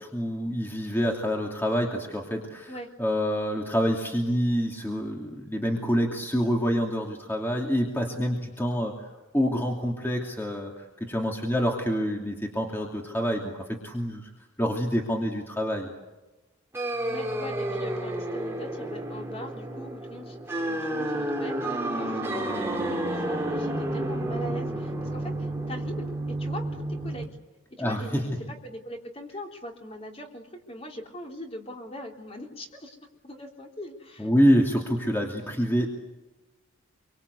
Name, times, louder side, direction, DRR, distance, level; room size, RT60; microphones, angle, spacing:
voice 1, 0.0-2.7 3.0-8.9 9.3-14.3 14.6-15.9 27.8-28.2 34.2-35.9, equal, 10° left, 0 dB, 2.7 m, -27 dB
sound 1, 16.7-27.2, right 1 dB, 10° right, 3.1 m, -31 dB
voice 2, 17.1-27.4 27.8-33.0 33.2-34.3, left 1 dB, 30° left, 2 dB, 3.5 m, -41 dB
27.5 x 24.0 x 8.3 m, 1.1 s
head